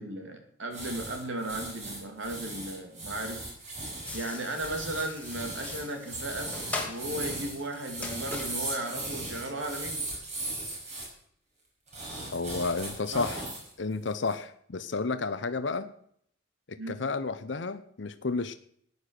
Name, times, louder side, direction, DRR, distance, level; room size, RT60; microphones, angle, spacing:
voice 1, 0.0-3.4 4.1-6.6 6.8-10.1 13.1-13.3 16.8-17.0, right 1 dB, 70° right, 4 dB, 2.7 m, -36 dB
sound 1, 0.7-11.1 11.9-13.7 14.1-14.3, right 2 dB, 35° right, 5.5 m, -38 dB
sound 2, 4.1-9.8, left 3 dB, 10° left, 2.1 m, -41 dB
voice 2, 12.3-13.4 13.8-15.9 16.7-18.5, left 4 dB, 65° left, 10 dB, 0.7 m, -31 dB
14.5 x 9.7 x 6.6 m, 0.66 s
head